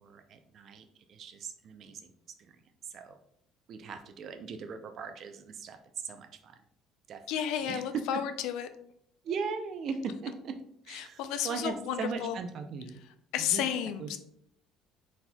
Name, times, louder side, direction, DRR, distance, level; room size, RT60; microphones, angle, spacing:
voice 1, 0.0-2.1 2.5-2.6 2.9-3.2 3.7-5.8 6.0-6.6 7.1-7.2 7.6-8.2 9.2-10.6 10.9-13.0 13.4-14.2, right 5 dB, 50° right, 8 dB, 0.5 m, -39 dB
voice 2, 7.3-8.7 10.9-12.4 13.3-14.2, left 9 dB, 75° left, 9 dB, 0.4 m, -32 dB
4.2 x 4.1 x 2.3 m, 0.71 s
cardioid pair, 125°, 0 cm